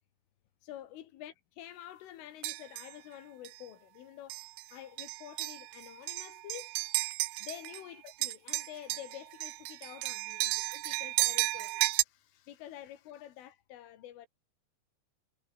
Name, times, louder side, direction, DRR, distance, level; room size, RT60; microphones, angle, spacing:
voice 1, 0.6-6.7 7.4-14.3, left 12 dB, 85° left, 4.5 m, -48 dB
sound 1, 2.4-2.9 3.5-3.6 4.3-4.6 5.0-7.8 8.1-12.0, right 20 dB, 90° right, 2.3 m, -33 dB
omnidirectional pair, 5.5 m